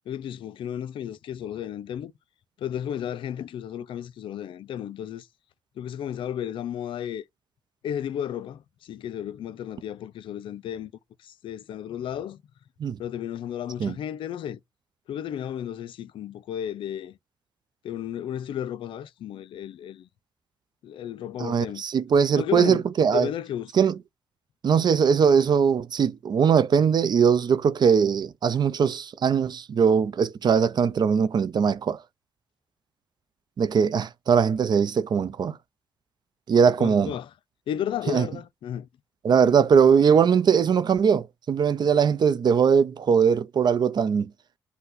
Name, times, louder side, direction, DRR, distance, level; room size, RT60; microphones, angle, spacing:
voice 1, 0.1-2.1 2.6-5.3 5.8-7.2 7.8-10.9 11.2-12.4 13.0-14.6 15.1-17.2 17.8-20.1 20.8-21.8 22.4-22.8 23.1-23.7 36.8-37.3 37.7-38.9, left 10 dB, 70° left, 0.4 m, -33 dB
voice 2, 21.4-23.3 23.7-24.0 24.6-32.0 33.6-35.6 36.5-37.1 38.1-38.3 39.2-44.3, right 6 dB, 50° right, 0.5 m, -21 dB
5.3 x 2.2 x 3.8 m
supercardioid pair, 50°, 9 cm